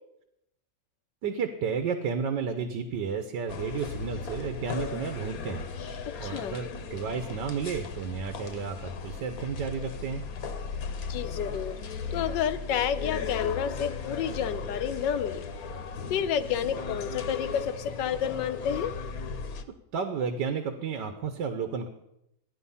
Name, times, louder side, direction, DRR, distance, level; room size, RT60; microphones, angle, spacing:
voice 1, 1.2-5.7 6.2-10.2 19.9-21.9, right 6 dB, 85° right, 7 dB, 1.6 m, -32 dB
sound 1, 3.5-19.6, left 5 dB, 60° left, 1.3 m, -37 dB
voice 2, 6.1-6.6 11.1-11.7 12.1-15.5 16.1-18.9, left 8 dB, 85° left, 12 dB, 1.4 m, -30 dB
14.5 x 9.9 x 5.6 m, 0.82 s
omnidirectional pair, 1.9 m